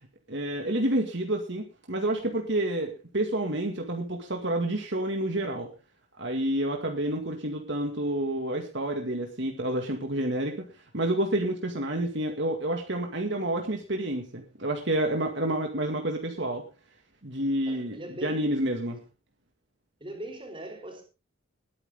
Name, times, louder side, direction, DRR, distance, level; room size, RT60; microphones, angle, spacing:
voice 1, 0.3-5.7 6.2-16.6 17.2-19.0, right 1 dB, 55° right, 3 dB, 2.1 m, -29 dB
voice 2, 17.7-18.7 20.0-21.0, right 1 dB, 25° right, 4 dB, 4.7 m, -41 dB
20.5 x 9.8 x 3.6 m, 0.31 s
head